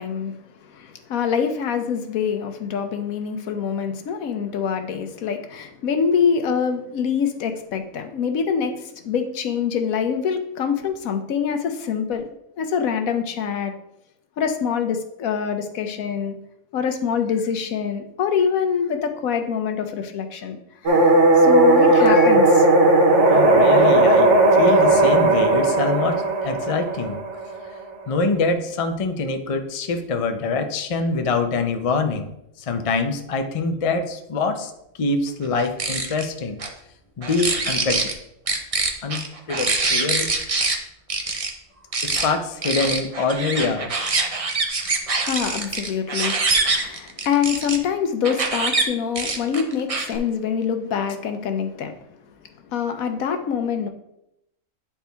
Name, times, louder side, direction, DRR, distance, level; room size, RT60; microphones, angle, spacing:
voice 1, 0.0-12.3 12.6-13.7 14.4-16.3 16.7-20.6 20.8-21.0 21.4-22.7 45.3-51.9 52.7-53.9, left 7 dB, 75° left, 7 dB, 1.2 m, -25 dB
sound 1, 20.9-27.8, right 2 dB, 60° right, 1.4 m, -16 dB
voice 2, 23.3-27.2 27.7-27.8 28.1-32.3 32.6-34.7 35.0-36.6 37.2-38.1 39.0-39.2 39.5-40.3 42.0-43.9, left 4 dB, 40° left, 6 dB, 0.5 m, -24 dB
sound 2, 35.6-36.3 36.6-36.7 37.2-38.1 38.5-40.8 41.1-41.5 41.9-42.3 42.6-47.8 48.2-48.8 49.2-50.2, right 3 dB, 35° right, 0.6 m, -24 dB
9.8 x 4.4 x 3.4 m, 0.81 s
omnidirectional pair, 1.5 m